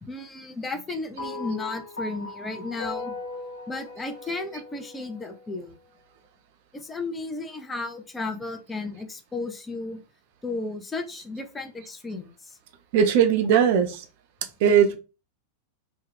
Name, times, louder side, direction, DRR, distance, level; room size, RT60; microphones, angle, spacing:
voice 1, 0.0-3.2 3.7-5.7 6.7-10.0 10.4-12.6, left 3 dB, 15° left, 0.5 m, -34 dB
sound 1, 1.2-5.6, left 3 dB, 70° left, 0.4 m, -38 dB
voice 2, 12.9-14.0 14.6-15.0, right 8 dB, 50° right, 0.4 m, -19 dB
2.2 x 2.2 x 3.3 m
figure-of-eight pair, 90°, 0 cm